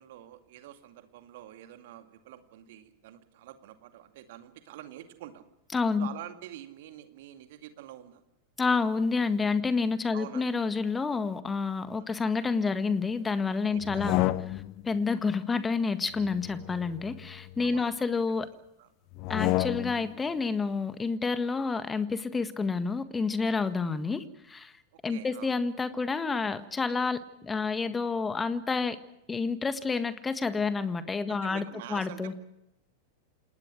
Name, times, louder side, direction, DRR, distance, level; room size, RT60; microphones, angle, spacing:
voice 1, 0.0-5.4 6.0-8.2 10.1-10.4 11.9-12.1 13.7-14.2 17.6-18.0 18.8-18.9 25.1-25.5 31.3-32.4, right 13 dB, 50° right, 7 dB, 2.2 m, -46 dB
voice 2, 5.7-6.1 8.6-14.2 14.8-18.5 19.3-24.7 25.0-29.0 29.3-32.3, left 4 dB, 15° left, 12 dB, 1.7 m, -29 dB
sound 1, 13.8-14.9 16.2-17.8 19.1-20.1, left 17 dB, 40° left, 0.8 m, -31 dB
28.0 x 19.5 x 6.4 m, 0.85 s
figure-of-eight pair, 90°, 0 cm